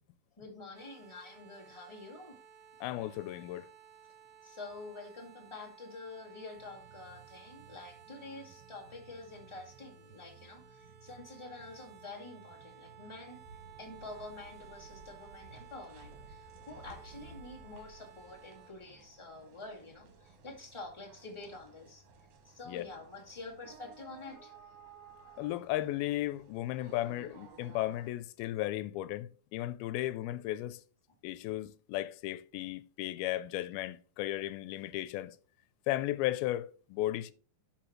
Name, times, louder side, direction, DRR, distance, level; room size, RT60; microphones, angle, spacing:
voice 1, 0.4-2.4 4.4-13.4 13.8-22.0 22.4-24.5, left 3 dB, 10° left, 1.4 m, -48 dB
sound 1, 0.7-18.7, right 8 dB, 85° right, 1.3 m, -56 dB
voice 2, 2.8-3.7 22.7-22.9 25.4-30.8 31.2-35.4 35.9-37.3, left 15 dB, 90° left, 2.5 m, -35 dB
sound 2, 6.6-14.6, right 7 dB, 40° right, 2.5 m, -60 dB
sound 3, 13.4-28.1, right 4 dB, 60° right, 2.6 m, -56 dB
12.0 x 5.6 x 3.2 m
omnidirectional pair, 4.3 m